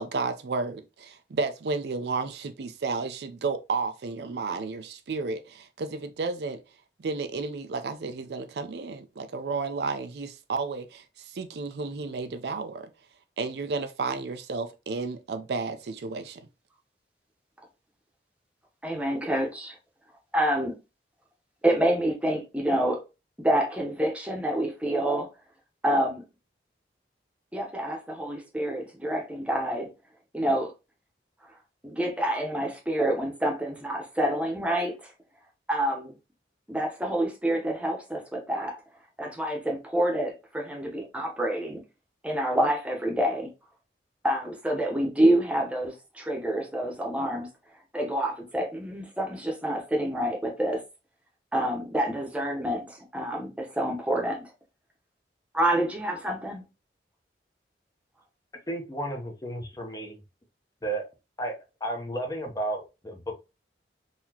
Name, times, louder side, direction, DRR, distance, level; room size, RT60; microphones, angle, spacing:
voice 1, 0.0-6.6 7.0-12.9 13.4-16.4, right 4 dB, 65° right, 0.4 m, -32 dB
voice 2, 18.8-19.8 20.3-20.7 21.6-23.0 23.4-25.3 25.8-26.2 27.5-29.9 30.3-30.7 31.8-35.1 35.7-36.1 36.7-38.8 39.2-41.8 42.2-43.5 44.2-47.5 47.9-50.8 51.5-54.5 55.5-56.6, right 1 dB, 5° right, 0.8 m, -27 dB
voice 3, 58.7-60.2 60.8-61.1 61.4-63.4, right 1 dB, 20° left, 0.7 m, -33 dB
4.0 x 2.8 x 2.8 m
head